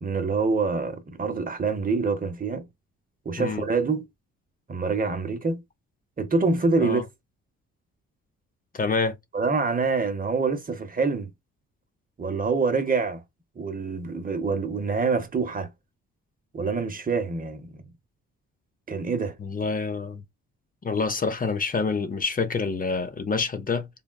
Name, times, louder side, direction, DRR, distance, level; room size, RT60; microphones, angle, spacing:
voice 1, 0.0-2.7 3.2-4.1 4.7-5.6 6.2-7.0 9.3-11.3 12.2-13.2 13.6-15.7 16.5-17.8 18.9-19.4, right 4 dB, 30° right, 0.8 m, -26 dB
voice 2, 8.7-9.2 19.4-20.2 20.8-23.9, left 4 dB, 30° left, 0.6 m, -27 dB
3.5 x 2.2 x 2.3 m
cardioid pair, 70°, 30 cm